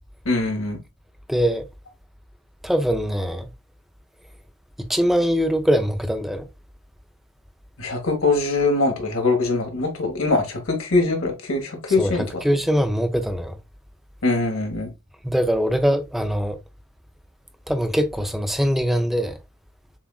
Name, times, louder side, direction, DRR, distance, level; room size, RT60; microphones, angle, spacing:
voice 1, 0.2-0.8 7.8-12.2 14.2-14.9, left 3 dB, 65° left, 1.3 m, -22 dB
voice 2, 1.3-1.7 2.6-3.5 4.8-6.5 12.0-13.6 15.2-16.6 17.7-19.4, equal, ahead, 0.4 m, -22 dB
7.0 x 2.4 x 2.3 m
head